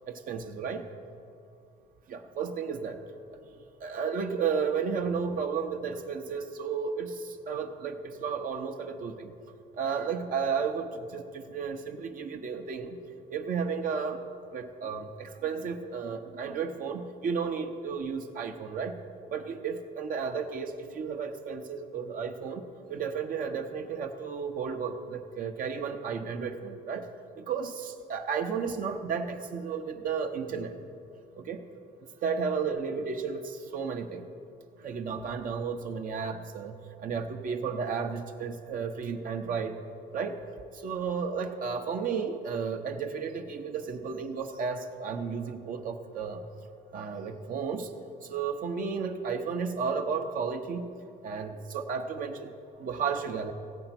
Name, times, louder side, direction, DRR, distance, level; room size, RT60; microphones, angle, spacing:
voice 1, 0.1-0.9 2.1-3.0 3.8-9.3 9.8-13.0 13.3-14.2 14.5-19.0 19.3-22.6 22.9-27.1 27.4-30.7 31.4-31.6 32.2-34.2 34.8-39.8 40.1-40.4 40.7-46.4 46.9-47.9 48.2-50.9 51.2-52.5 52.8-53.5, right 6 dB, 55° right, 4 dB, 0.9 m, -33 dB
16.0 x 7.9 x 6.0 m, 2.4 s
cardioid pair, 110°, 17 cm